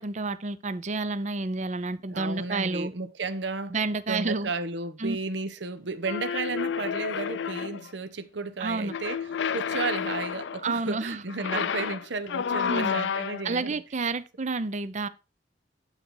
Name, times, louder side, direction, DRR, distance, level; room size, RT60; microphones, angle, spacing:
voice 1, 0.0-2.9 3.7-4.5 5.0-5.2 8.6-8.9 10.6-11.2 12.7-13.0 13.4-15.1, right 3 dB, 40° right, 0.6 m, -30 dB
voice 2, 2.1-3.8 4.1-9.3 9.5-13.8, right 4 dB, 75° right, 0.8 m, -33 dB
sound 1, 6.0-7.9 8.9-10.7 11.3-13.6, left 7 dB, 75° left, 0.4 m, -30 dB
12.0 x 4.1 x 4.6 m
head